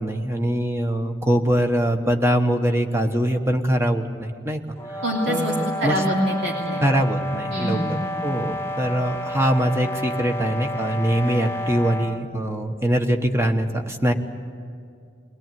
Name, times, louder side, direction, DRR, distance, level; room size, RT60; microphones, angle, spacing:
voice 1, 0.0-4.6 4.9-6.0 6.8-14.1, right 1 dB, 15° right, 5 dB, 1.2 m, -23 dB
sound 1, 4.8-12.3, left 1 dB, 15° left, 1.8 m, -30 dB
voice 2, 5.0-5.5 5.8-6.8 7.5-8.0, equal, 65° right, -3 dB, 3.1 m, -25 dB
22.5 x 18.0 x 9.3 m, 2.3 s
head